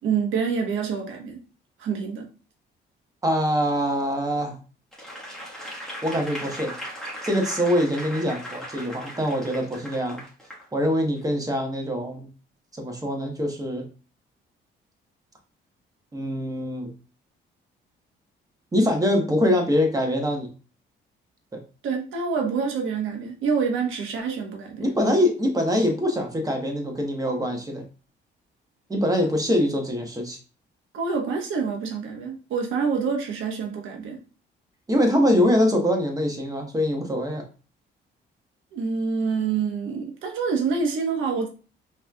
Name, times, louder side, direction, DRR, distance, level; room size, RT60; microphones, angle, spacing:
voice 1, 0.0-1.4 1.8-2.3 21.8-24.9 30.9-34.2 38.7-41.5, right 5 dB, 80° right, 2 dB, 1.2 m, -26 dB
voice 2, 3.2-4.6 6.0-6.7 7.2-10.2 10.7-12.3 12.7-13.8 16.1-16.9 18.7-20.5 21.5-21.6 24.8-27.8 28.9-30.4 34.9-37.4, equal, 20° right, 3 dB, 1.2 m, -24 dB
Applause / Crowd, 4.9-10.6 11.2-11.3, equal, 5° left, 1.5 m, -38 dB
5.3 x 3.2 x 2.3 m, 0.35 s
cardioid pair, 90°, 20 cm